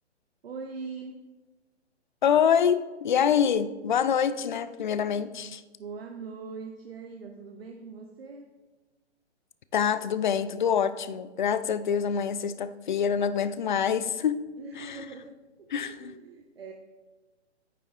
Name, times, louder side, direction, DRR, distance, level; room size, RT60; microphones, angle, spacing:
voice 1, 0.4-1.2 5.8-8.5 14.6-16.7, right 4 dB, 55° right, 3 dB, 0.9 m, -42 dB
voice 2, 2.2-5.6 9.7-14.4 14.8-15.1 15.7-16.1, left 8 dB, 45° left, 14 dB, 0.5 m, -26 dB
9.2 x 7.0 x 3.7 m, 1.2 s
figure-of-eight pair, 130°, 35 cm